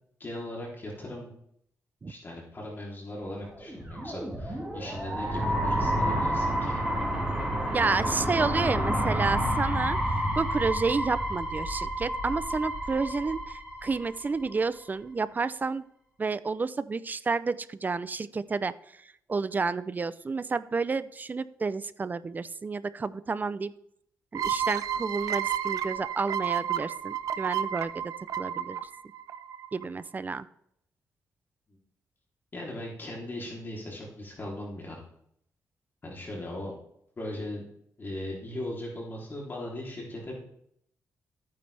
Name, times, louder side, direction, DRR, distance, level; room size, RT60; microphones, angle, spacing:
voice 1, 0.2-1.3 2.1-6.8 31.7-31.8 32.5-35.0 36.0-36.7 37.2-37.6 38.0-40.4, left 1 dB, 35° left, -3 dB, 3.2 m, -38 dB
sound 1, 3.6-14.5, equal, 10° right, 4.2 m, -29 dB
voice 2, 7.7-10.0 10.4-15.9 16.2-23.7 24.3-28.8 29.7-30.5, right 4 dB, 30° right, 15 dB, 0.5 m, -30 dB
sound 2, 24.3-29.8, right 9 dB, 75° right, 0.6 m, -31 dB
13.5 x 9.4 x 3.4 m, 0.72 s
cardioid pair, 105°, 6 cm